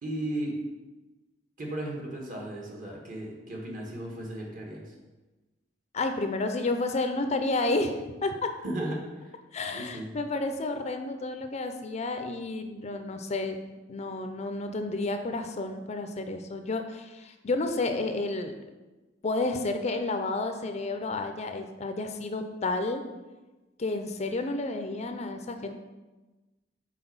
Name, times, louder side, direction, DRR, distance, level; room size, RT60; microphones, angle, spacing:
voice 1, 0.0-0.5 1.6-4.9 8.6-9.3 9.7-10.1, right 1 dB, 50° right, -1 dB, 1.6 m, -35 dB
voice 2, 5.9-8.5 9.5-18.5 19.2-23.0 23.8-25.7, left 2 dB, 35° left, 7 dB, 0.5 m, -31 dB
5.9 x 4.3 x 5.4 m, 1.2 s
head